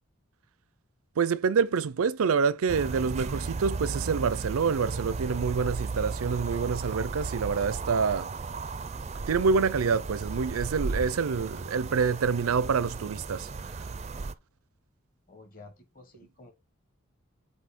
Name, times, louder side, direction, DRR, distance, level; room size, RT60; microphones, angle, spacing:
voice 1, 1.2-8.3 9.3-13.5 13.8-13.9, right 5 dB, 90° right, 0.5 m, -27 dB
sound 1, 2.7-14.3, right 4 dB, 30° right, 0.4 m, -35 dB
voice 2, 15.3-16.5, left 3 dB, 40° left, 1.5 m, -51 dB
7.8 x 2.7 x 5.2 m
head